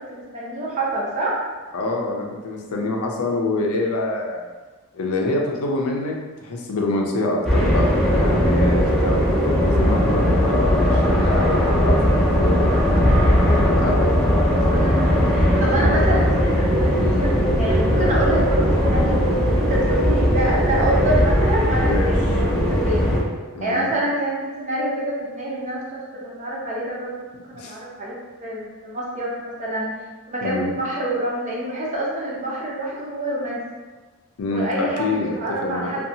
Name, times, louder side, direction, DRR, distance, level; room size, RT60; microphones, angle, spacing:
voice 1, 0.0-1.4 2.7-2.9 8.6-8.9 14.7-23.0 23.6-25.9 26.2-29.9 30.3-33.6 34.5-36.0, right 1 dB, 35° right, -5 dB, 0.7 m, -27 dB
voice 2, 1.7-4.5 4.9-6.1 6.4-14.2 17.0-17.3 21.8-22.1 23.5-23.9 27.5-27.8 30.4-30.8 34.4-35.9, left 2 dB, 75° left, 0 dB, 0.4 m, -26 dB
sound 1, 7.4-23.2, equal, 5° left, 0.5 m, -18 dB
2.6 x 2.3 x 2.7 m, 1.3 s
head